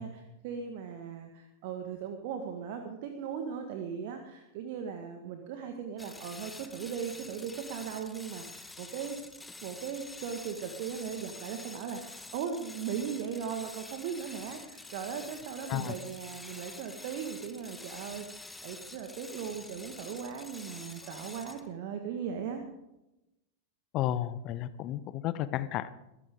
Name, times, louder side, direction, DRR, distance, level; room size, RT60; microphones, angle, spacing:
voice 1, 0.0-9.2 9.6-22.6, right 7 dB, 50° right, 5 dB, 1.7 m, -38 dB
sound 1, 6.0-21.7, left 2 dB, 10° left, 1.1 m, -47 dB
voice 2, 23.9-25.9, left 12 dB, 40° left, 14 dB, 1.0 m, -32 dB
22.5 x 14.0 x 3.8 m, 0.92 s
figure-of-eight pair, 90°, 0 cm